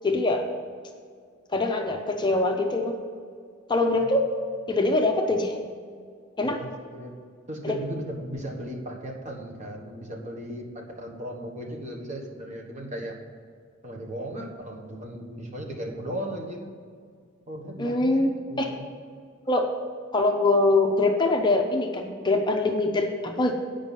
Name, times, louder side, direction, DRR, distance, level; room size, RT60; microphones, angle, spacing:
voice 1, 0.0-0.4 1.5-3.0 3.7-4.3 4.7-5.6 6.4-6.6 7.6-7.8 17.8-18.3 18.6-18.7 19.5-19.7 20.1-23.5, left 2 dB, 20° left, 3 dB, 0.6 m, -23 dB
voice 2, 6.4-7.1 7.5-13.2 13.8-16.7 17.5-18.8, equal, 35° right, 0 dB, 1.3 m, -36 dB
8.9 x 5.3 x 7.4 m, 2.1 s
head